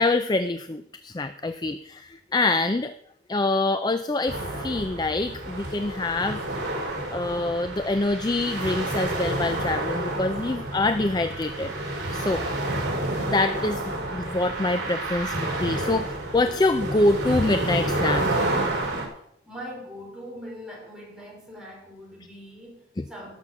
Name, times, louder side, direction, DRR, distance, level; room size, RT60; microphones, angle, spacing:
voice 1, 0.0-2.9 3.3-6.4 7.1-11.7 12.1-12.4 13.3-13.8 14.1-18.4 23.0-23.1, left 2 dB, 20° left, 10 dB, 0.4 m, -25 dB
sound 1, 4.3-19.0, right 1 dB, 60° right, 4.7 m, -29 dB
voice 2, 19.5-23.4, equal, 5° right, -3 dB, 4.6 m, -41 dB
18.5 x 7.4 x 6.0 m, 0.73 s
head